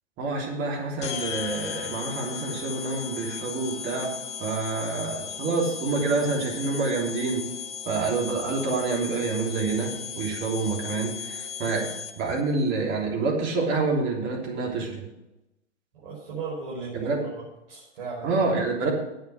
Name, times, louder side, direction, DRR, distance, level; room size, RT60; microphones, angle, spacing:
voice 1, 0.2-4.1 4.4-7.5 7.8-11.9 12.2-15.0 16.9-17.2 18.2-18.9, right 3 dB, 30° right, -1 dB, 3.3 m, -27 dB
sound 1, 1.0-12.4, left 7 dB, 20° left, 0.6 m, -36 dB
voice 2, 16.0-17.4 17.7-18.4 18.8-18.9, right 4 dB, 55° right, -5 dB, 5.0 m, -36 dB
10.0 x 8.5 x 6.2 m, 0.94 s
figure-of-eight pair, 115°, 35 cm